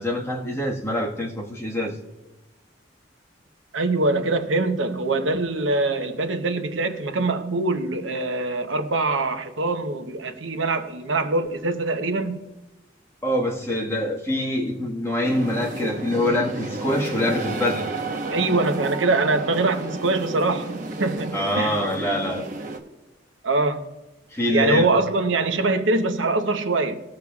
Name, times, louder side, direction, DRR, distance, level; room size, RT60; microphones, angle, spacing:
voice 1, 0.0-2.0 13.2-17.9 21.3-22.5 24.3-25.0, left 1 dB, 15° left, 1.4 m, -25 dB
voice 2, 3.7-12.4 18.3-21.8 23.4-23.8 24.5-27.0, right 2 dB, 85° right, 0.9 m, -23 dB
sound 1, 15.2-22.8, right 2 dB, 45° right, 1.0 m, -32 dB
18.5 x 6.8 x 2.3 m
head